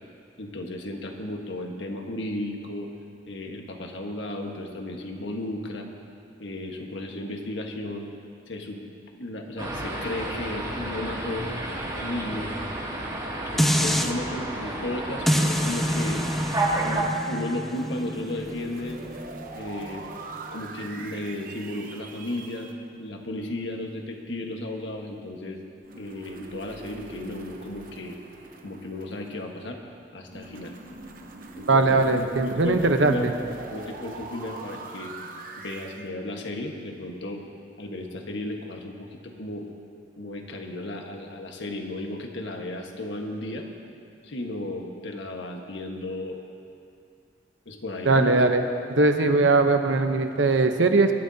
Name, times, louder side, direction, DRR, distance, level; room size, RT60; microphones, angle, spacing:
voice 1, 0.4-2.9 3.3-5.9 6.4-8.1 8.5-8.8 9.1-11.5 11.9-12.5 13.5-16.2 16.7-19.0 19.5-20.0 20.5-22.7 23.0-25.6 25.9-28.2 28.6-29.8 30.1-30.7 31.6-32.0 32.4-33.3 33.7-35.1 35.6-37.4 37.8-39.7 40.2-43.7 44.2-46.4 47.6-48.3, left 1 dB, 80° left, 2 dB, 1.5 m, -34 dB
sound 1, 9.6-17.0, right 2 dB, 25° right, 2.5 m, -31 dB
sound 2, 13.6-14.1 15.3-20.4 20.9-21.0, equal, ahead, 0.5 m, -27 dB
sound 3, 17.6-22.7 25.8-29.6 30.3-36.1, right 3 dB, 50° right, 0.9 m, -42 dB
voice 2, 31.7-33.3 48.1-48.6 49.0-51.1, right 3 dB, 85° right, 6 dB, 0.9 m, -20 dB
23.0 x 13.0 x 2.8 m, 2.4 s
head